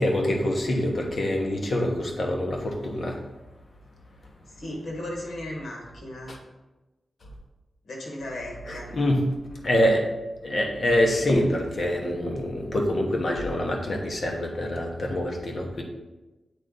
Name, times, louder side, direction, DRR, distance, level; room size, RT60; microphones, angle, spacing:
voice 1, 0.0-3.2 6.3-6.4 8.7-9.2 9.6-10.0 10.4-15.8, left 1 dB, 50° left, 1 dB, 1.1 m, -25 dB
voice 2, 4.6-6.3 7.8-8.9, left 1 dB, 85° left, -1 dB, 1.7 m, -36 dB
8.2 x 3.9 x 3.9 m, 1.1 s
wide cardioid pair, 135°, 0 cm